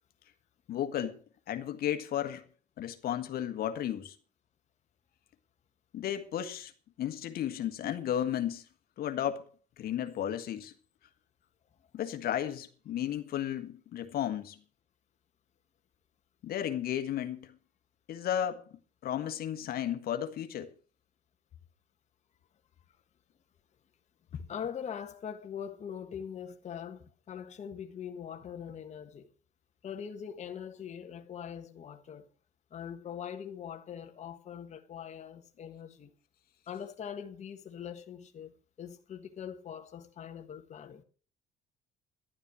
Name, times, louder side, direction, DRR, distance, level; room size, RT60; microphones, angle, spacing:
voice 1, 0.7-1.2 1.5-2.4 2.8-4.2 5.9-6.7 7.0-8.7 9.0-9.4 9.8-10.7 11.9-14.6 16.4-17.6 18.1-18.7 19.0-20.7, left 10 dB, 65° left, 1.7 m, -33 dB
voice 2, 24.3-29.3 29.8-32.3 32.7-36.1 36.7-41.0, left 8 dB, 45° left, 1.5 m, -42 dB
12.5 x 11.5 x 6.2 m
cardioid pair, 110°, 17 cm